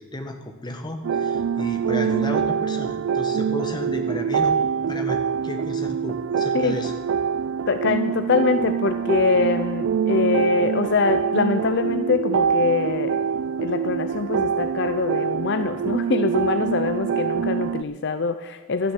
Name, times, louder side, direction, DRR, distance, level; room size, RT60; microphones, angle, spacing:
voice 1, 0.0-4.5 4.9-6.9, left 1 dB, 20° left, 4 dB, 1.7 m, -33 dB
sound 1, 1.0-17.8, right 7 dB, 70° right, 0.3 m, -24 dB
voice 2, 7.7-13.2 13.6-18.9, left 4 dB, 60° left, 10 dB, 0.6 m, -23 dB
13.0 x 9.9 x 7.3 m, 1.3 s
head